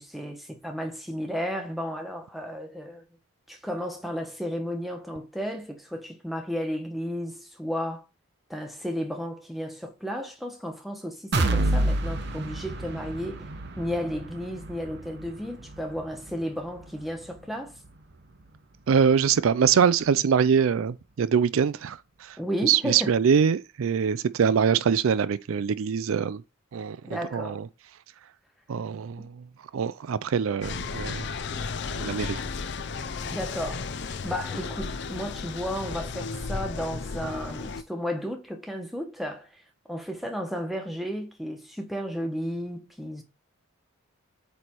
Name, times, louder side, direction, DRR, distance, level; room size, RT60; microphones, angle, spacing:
voice 1, 0.0-3.0 3.5-8.0 8.5-13.4 13.8-17.7 22.4-23.1 27.0-27.6 29.2-29.3 33.3-33.9 34.2-39.6 39.9-43.2, equal, ahead, 1.1 m, -33 dB
sound 1, 11.3-19.1 19.5-19.6 20.0-20.1, right 1 dB, 50° right, 0.8 m, -31 dB
voice 2, 18.9-26.4 26.7-27.7 28.7-29.5 29.7-31.3 31.9-32.4, right 7 dB, 75° right, 0.4 m, -24 dB
sound 2, 30.6-37.8, left 4 dB, 55° left, 0.5 m, -34 dB
8.3 x 3.3 x 4.5 m
head